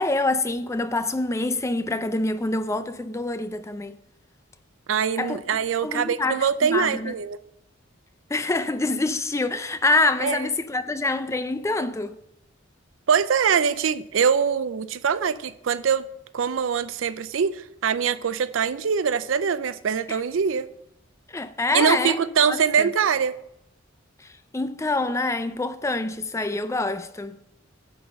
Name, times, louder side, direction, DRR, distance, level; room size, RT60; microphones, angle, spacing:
voice 1, 0.0-3.9 5.2-5.4 5.8-7.1 8.3-12.2 20.1-20.2 21.3-22.2 22.5-22.9 24.5-27.4, left 2 dB, 15° left, 0.4 m, -26 dB
voice 2, 4.9-7.4 10.2-10.5 13.1-16.1 16.3-20.7 21.7-23.3, right 7 dB, 80° right, 0.5 m, -23 dB
10.0 x 4.0 x 6.5 m
head